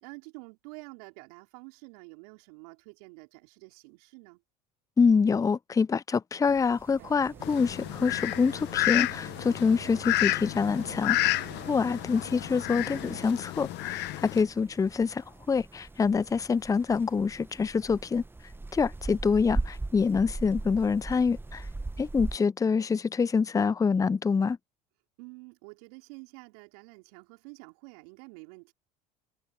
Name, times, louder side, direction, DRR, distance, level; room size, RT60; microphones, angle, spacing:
voice 1, 0.0-4.4 14.1-14.5 25.2-28.7, right 30 dB, 70° right, 3.4 m, -49 dB
voice 2, 5.0-18.2 18.7-21.7 22.0-24.6, left 5 dB, 15° left, 0.5 m, -26 dB
sound 1, 6.5-22.4, right 2 dB, 10° right, 1.0 m, -41 dB
sound 2, 7.0-13.3, right 16 dB, 55° right, 1.1 m, -48 dB
Fowl, 7.4-14.4, left 18 dB, 55° left, 1.2 m, -31 dB
hypercardioid pair, 70°, 21 cm